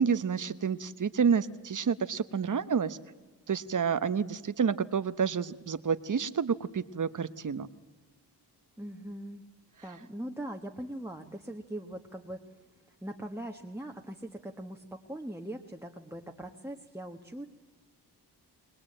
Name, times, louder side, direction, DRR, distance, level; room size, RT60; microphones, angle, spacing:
voice 1, 0.0-3.0 3.5-7.7, right 6 dB, 45° right, 13 dB, 1.1 m, -29 dB
voice 2, 8.8-9.4 9.8-12.4 13.0-17.5, right 1 dB, 5° right, 2 dB, 1.4 m, -41 dB
22.5 x 20.5 x 8.8 m, 1.3 s
wide cardioid pair, 100°, 41 cm